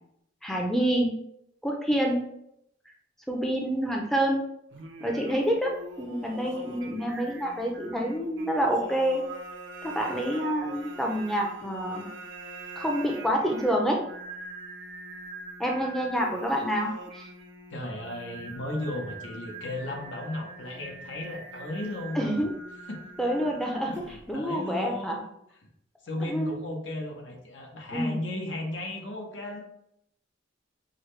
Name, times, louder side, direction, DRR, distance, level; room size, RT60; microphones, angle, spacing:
voice 1, 0.4-1.1 1.6-2.2 3.3-4.4 5.0-5.7 6.0-9.2 9.8-12.1 12.8-14.0 15.6-17.3 22.1-22.5 23.2-23.9 24.3-25.2 26.2-26.6 27.9-28.2, equal, ahead, 0 dB, 0.5 m, -27 dB
Singing, 4.7-24.3, right 2 dB, 75° right, 0.6 m, -43 dB
voice 2, 17.7-22.3 22.9-23.0 23.9-25.3 26.0-29.6, left 1 dB, 85° left, 1 dB, 0.9 m, -35 dB
6.2 x 2.1 x 3.2 m, 0.76 s
head